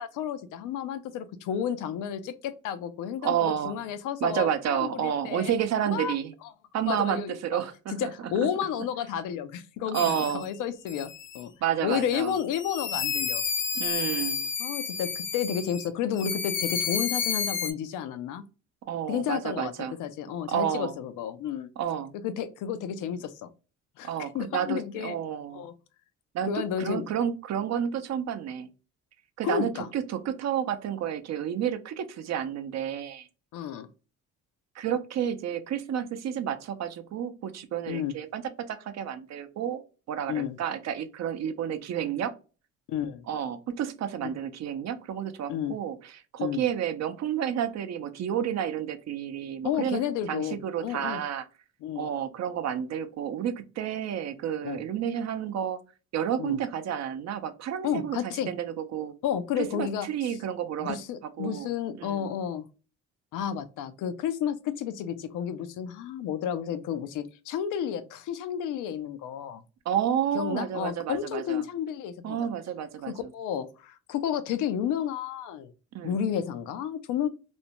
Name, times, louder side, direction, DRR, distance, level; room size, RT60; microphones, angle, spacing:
voice 1, 0.0-5.5 5.9-6.1 6.8-7.4 8.0-11.5 11.8-13.4 14.6-18.4 19.1-19.7 20.0-21.7 22.2-23.5 24.0-25.2 25.5-25.7 26.5-27.1 29.4-29.9 33.5-33.9 37.9-38.1 40.3-40.6 42.9-43.2 44.2-44.3 45.5-45.7 46.4-46.6 49.6-51.2 51.8-52.1 54.6-54.8 56.4-56.6 57.8-58.5 59.2-60.4 60.8-62.7 63.3-69.6 70.3-72.5 73.1-75.7 76.0-77.3, left 9 dB, 85° left, 0.5 m, -31 dB
voice 2, 3.2-3.8 4.2-6.3 6.7-8.5 9.9-10.5 11.6-12.3 13.8-14.4 18.9-20.0 20.5-20.9 21.8-22.1 24.0-25.7 26.3-28.7 29.4-33.3 34.8-39.8 40.1-42.3 43.3-46.0 46.3-50.0 50.3-51.5 52.0-55.8 56.1-58.2 58.5-59.2 59.6-61.0 61.2-61.7 61.9-62.3 69.9-71.6 72.2-73.3 75.9-76.2, right 9 dB, 60° right, 0.5 m, -30 dB
sound 1, 9.9-10.5 10.9-11.4 11.9-15.9 16.2-17.7, left 6 dB, 40° left, 0.6 m, -31 dB
2.6 x 2.1 x 2.8 m
cardioid pair, 90°, 30 cm